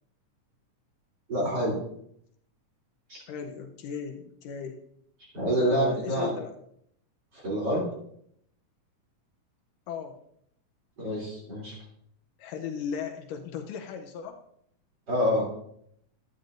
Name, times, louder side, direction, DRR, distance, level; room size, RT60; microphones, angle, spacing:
voice 1, 1.3-1.8 3.1-3.2 5.3-6.3 7.3-7.9 11.0-11.8 15.1-15.5, equal, 30° right, -5 dB, 3.3 m, -27 dB
voice 2, 3.3-4.8 5.6-6.5 9.9-10.1 12.4-14.4, left 6 dB, 80° left, 4 dB, 2.3 m, -36 dB
12.5 x 9.4 x 2.6 m, 0.70 s
omnidirectional pair, 3.9 m